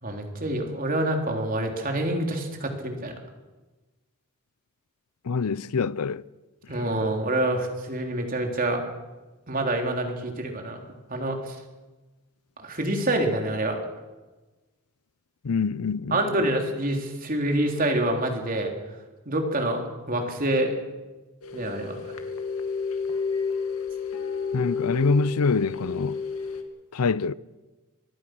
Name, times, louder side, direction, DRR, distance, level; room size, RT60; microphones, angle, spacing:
voice 1, 0.0-3.1 6.7-8.8 9.5-10.8 11.1-11.6 12.6-13.8 16.1-18.7 19.3-19.8 20.1-20.7 21.5-22.0, right 1 dB, 40° right, 3.5 m, -26 dB
voice 2, 5.2-6.2 15.4-16.4 24.5-26.2 26.9-27.3, left 4 dB, 90° left, 0.6 m, -25 dB
sound 1, 21.4-26.6, left 5 dB, 75° left, 2.3 m, -31 dB
24.5 x 19.5 x 6.2 m
head